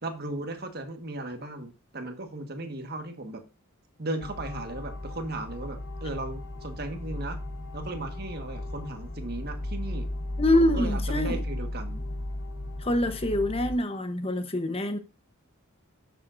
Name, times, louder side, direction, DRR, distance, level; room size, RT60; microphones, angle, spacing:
voice 1, 0.0-3.4 4.0-7.4 7.7-10.1 10.6-12.1, right 2 dB, 50° right, 1.5 m, -36 dB
sound 1, 4.2-13.8, left 1 dB, 55° left, 1.3 m, -35 dB
voice 2, 10.4-11.4 12.8-15.0, left 1 dB, 30° left, 0.9 m, -25 dB
10.5 x 7.1 x 2.6 m
head